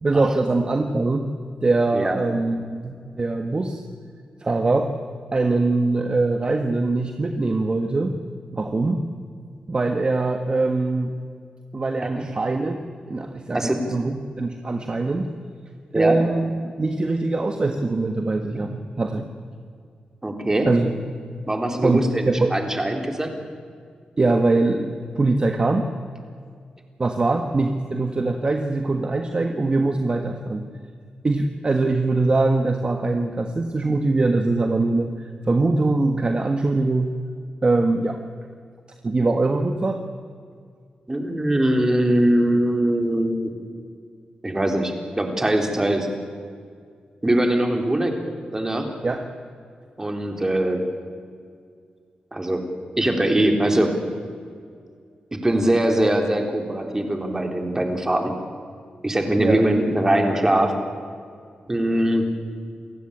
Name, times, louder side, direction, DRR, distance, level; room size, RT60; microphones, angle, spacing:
voice 1, 0.0-1.2 1.6-3.8 4.4-4.9 5.3-8.1 8.5-9.0 9.7-11.1 11.7-12.8 13.1-15.3 15.9-16.5 16.8-19.3 20.6-20.9 21.8-22.5 24.2-25.9 27.0-30.7 31.2-37.1 37.6-38.2 39.0-40.0 49.0-49.2 59.4-59.6, right 3 dB, 35° right, 5 dB, 1.5 m, -22 dB
voice 2, 20.2-20.7 21.5-23.3 41.1-43.5 44.4-46.1 47.2-48.2 48.5-48.9 50.0-50.8 52.3-52.6 53.0-54.0 55.3-58.3 59.0-60.8 61.7-62.3, right 1 dB, 20° right, 3 dB, 3.8 m, -22 dB
28.5 x 16.0 x 8.8 m, 2.2 s
cardioid pair, 80°, 3 cm